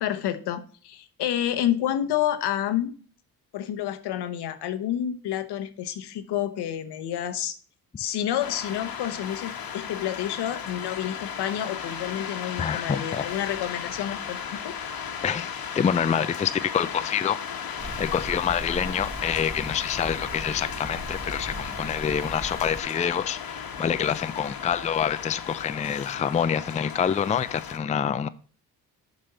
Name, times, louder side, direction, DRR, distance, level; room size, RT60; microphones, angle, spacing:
voice 1, 0.0-2.9 3.5-7.5 8.0-14.7, left 11 dB, 75° left, 1.0 m, -29 dB
sound 1, 8.4-27.8, left 7 dB, 60° left, 1.3 m, -36 dB
voice 2, 12.6-13.3 15.2-15.5 15.8-17.4 18.0-28.3, left 8 dB, 20° left, 0.4 m, -26 dB
sound 2, 17.8-22.8, right 1 dB, 15° right, 1.1 m, -39 dB
6.8 x 5.4 x 4.1 m
supercardioid pair, 60°, 40 cm